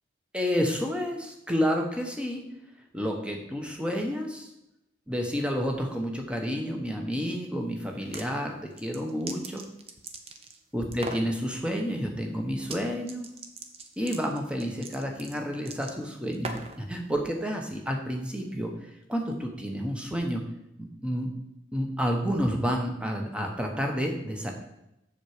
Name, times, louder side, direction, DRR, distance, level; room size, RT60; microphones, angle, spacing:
voice 1, 0.3-2.4 2.9-4.5 5.1-9.6 10.7-13.3 14.0-18.7 19.1-20.4 20.8-21.3 21.7-24.5, equal, 5° right, 2 dB, 1.1 m, -30 dB
sound 1, 7.9-8.3 8.8-10.6 10.9-11.3 12.6-12.8 13.1-16.8, right 3 dB, 30° right, 0.7 m, -40 dB
7.4 x 7.0 x 4.9 m, 0.86 s
head